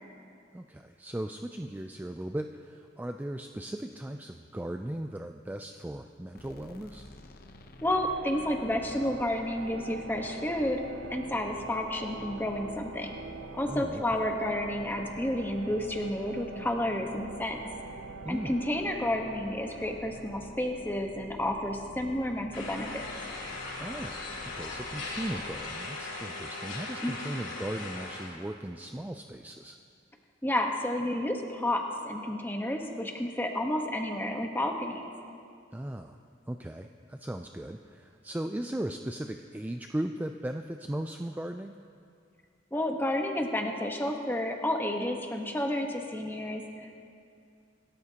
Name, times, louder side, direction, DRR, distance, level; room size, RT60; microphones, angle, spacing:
voice 1, 0.5-7.1 13.7-14.2 18.2-18.6 23.8-29.8 35.7-36.2 36.5-41.8, right 1 dB, 10° right, 6 dB, 0.3 m, -37 dB
sound 1, 6.3-26.0, left 1 dB, 50° left, 0.8 m, -49 dB
voice 2, 7.8-10.8 11.1-13.1 13.6-17.6 18.3-23.1 27.0-27.1 30.4-35.0 42.7-46.9, left 1 dB, 10° left, 2 dB, 1.1 m, -31 dB
sound 2, 7.9-21.5, right 5 dB, 85° right, 0.5 m, -46 dB
sound 3, 22.5-28.3, left 2 dB, 70° left, 3.6 m, -39 dB
26.5 x 13.0 x 2.9 m, 2.4 s
head